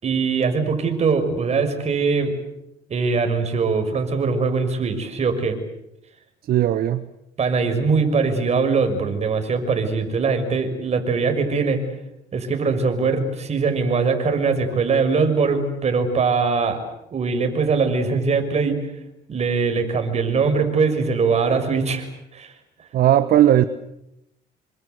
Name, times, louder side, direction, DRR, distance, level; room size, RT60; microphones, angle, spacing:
voice 1, 0.0-2.3 2.9-5.6 7.4-11.8 12.3-16.8 17.1-18.8 19.3-22.1 22.3-22.5, right 4 dB, 40° right, 7 dB, 6.1 m, -21 dB
voice 2, 6.4-7.1 22.9-23.6, right 12 dB, 60° right, 12 dB, 1.2 m, -17 dB
28.0 x 25.5 x 8.2 m, 0.85 s
cardioid pair, 110°, 17 cm